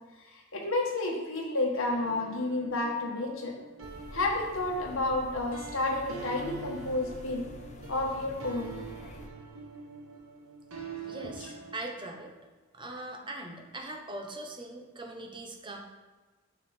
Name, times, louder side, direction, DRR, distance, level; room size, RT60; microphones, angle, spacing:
voice 1, 0.2-3.5 4.1-7.4 7.9-8.7 11.1-11.5, left 2 dB, 75° left, -1 dB, 1.5 m, -31 dB
sound 1, 1.9-11.7, right 4 dB, 85° right, 1.1 m, -45 dB
sound 2, 3.8-9.3, left 1 dB, 35° left, 0.6 m, -48 dB
voice 2, 11.1-12.3 12.7-15.8, right 2 dB, 25° right, 2 dB, 0.8 m, -41 dB
6.3 x 6.0 x 4.4 m, 1.3 s
head